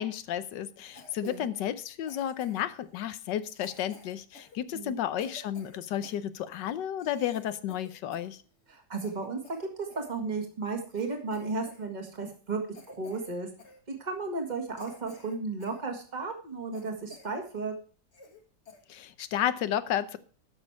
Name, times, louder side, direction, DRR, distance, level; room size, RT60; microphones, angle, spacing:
voice 1, 0.0-8.4 18.9-20.2, left 10 dB, 90° left, 14 dB, 1.4 m, -32 dB
Cough, 0.9-1.5 2.1-2.8 3.5-6.2 6.7-6.8 7.0-8.4 8.7-10.1 10.6-10.7 10.9-11.9 12.1-12.3 12.7-13.3 13.6-13.8 14.3-14.4 14.8-15.8 16.2-16.3 16.7-17.4 17.7-17.8 18.1-18.4 18.7-18.8 19.3-19.6, left 2 dB, 40° left, 1.7 m, -52 dB
voice 2, 8.7-12.6 12.9-13.5 14.0-17.7, right 3 dB, 25° right, 4 dB, 2.0 m, -34 dB
12.5 x 6.5 x 4.7 m, 0.41 s
omnidirectional pair, 1.8 m